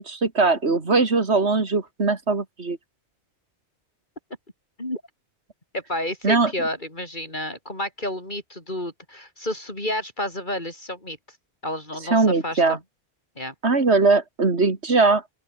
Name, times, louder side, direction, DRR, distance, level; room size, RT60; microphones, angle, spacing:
voice 1, 0.0-2.8 6.2-6.5 12.1-12.8 13.6-15.2, right 3 dB, 85° right, 2.8 m, -20 dB
voice 2, 5.7-11.2 11.6-12.8 13.4-13.5, left 1 dB, 45° left, 6.5 m, -30 dB
open air
omnidirectional pair, 1.1 m